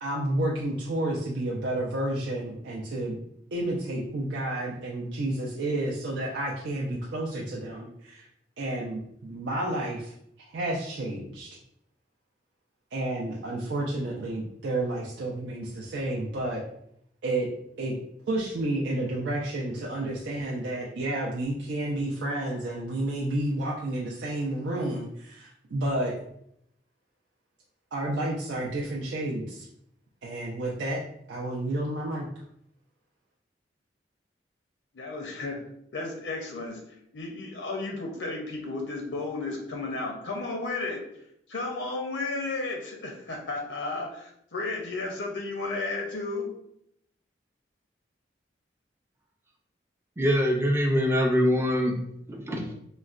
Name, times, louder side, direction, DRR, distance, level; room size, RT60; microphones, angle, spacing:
voice 1, 0.0-3.2 3.5-8.3 8.6-11.6 12.9-16.6 17.2-17.5 17.8-18.0 18.3-26.1 27.9-29.7 30.2-31.0 31.3-32.3, right 1 dB, 80° right, -4 dB, 0.5 m, -30 dB
voice 2, 34.9-35.6 35.9-36.8 37.1-41.0 41.5-46.5, left 3 dB, 85° left, 1 dB, 0.5 m, -33 dB
voice 3, 50.2-52.0 52.3-52.7, equal, 15° right, 2 dB, 0.4 m, -23 dB
3.8 x 2.1 x 2.4 m, 0.73 s
head